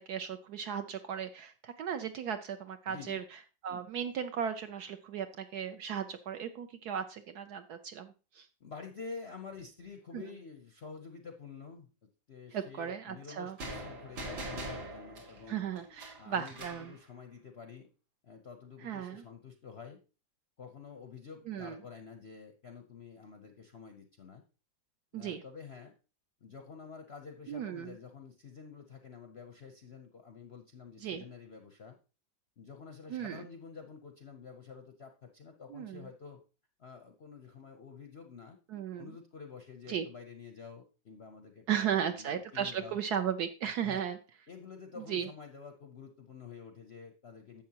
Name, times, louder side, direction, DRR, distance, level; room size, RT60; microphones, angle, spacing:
voice 1, 0.1-3.2 3.6-8.5 10.1-10.2 12.5-13.6 15.5-16.9 18.8-19.2 21.5-21.8 25.1-25.4 27.5-27.9 31.0-31.2 33.1-33.4 35.7-36.0 38.7-39.1 39.9-40.0 41.7-44.2 45.1-45.3, right 8 dB, 70° right, 8 dB, 1.0 m, -36 dB
voice 2, 2.9-3.2 8.6-15.6 16.2-17.9 18.2-20.0 20.6-24.4 25.1-25.9 26.4-32.0 32.6-36.4 36.8-38.6 39.0-43.0 43.8-44.1 44.5-47.6, left 5 dB, 60° left, 5 dB, 0.7 m, -49 dB
sound 1, 13.6-16.9, right 1 dB, 85° right, 2.8 m, -42 dB
11.0 x 7.5 x 2.8 m, 0.34 s
omnidirectional pair, 2.1 m